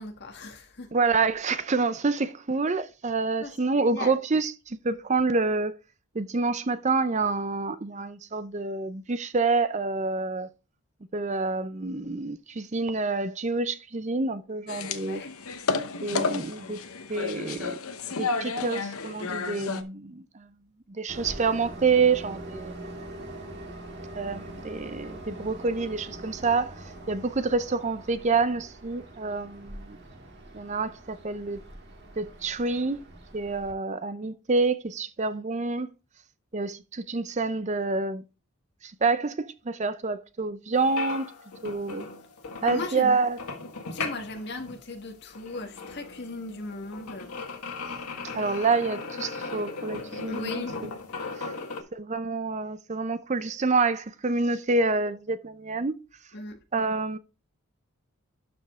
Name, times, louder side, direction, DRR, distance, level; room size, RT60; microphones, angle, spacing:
voice 1, 0.0-0.9 3.4-4.1 15.1-15.3 42.6-43.1 43.9-47.3 50.3-50.7 56.3-56.6, left 2 dB, 50° left, 1.6 m, -37 dB
voice 2, 0.9-5.8 6.1-10.5 11.1-15.3 16.0-16.8 17.1-17.8 18.2-20.5 20.9-22.9 24.1-30.0 30.5-31.6 32.2-33.0 33.3-35.9 36.5-38.2 38.8-41.3 41.6-42.1 42.6-43.4 48.3-50.9 51.4-51.5 51.9-56.0 56.7-57.2, right 4 dB, 30° right, 0.5 m, -27 dB
sound 1, 14.7-19.8, left 4 dB, 70° left, 0.9 m, -31 dB
Train, 21.1-33.7, right 1 dB, 50° right, 1.8 m, -43 dB
sound 2, 40.7-51.8, left 4 dB, 90° left, 1.6 m, -38 dB
12.0 x 5.3 x 3.6 m
head